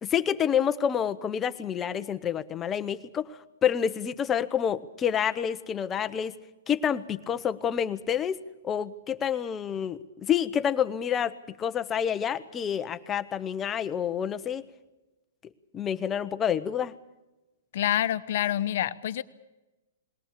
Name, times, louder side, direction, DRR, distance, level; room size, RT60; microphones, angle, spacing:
voice 1, 0.0-6.3 6.7-8.4 8.6-14.7 15.7-16.9, left 8 dB, 20° left, 12 dB, 0.9 m, -28 dB
voice 2, 17.7-19.2, left 12 dB, 60° left, 12 dB, 1.0 m, -27 dB
21.5 x 18.0 x 8.5 m, 1.0 s
hypercardioid pair, 135°, 0 cm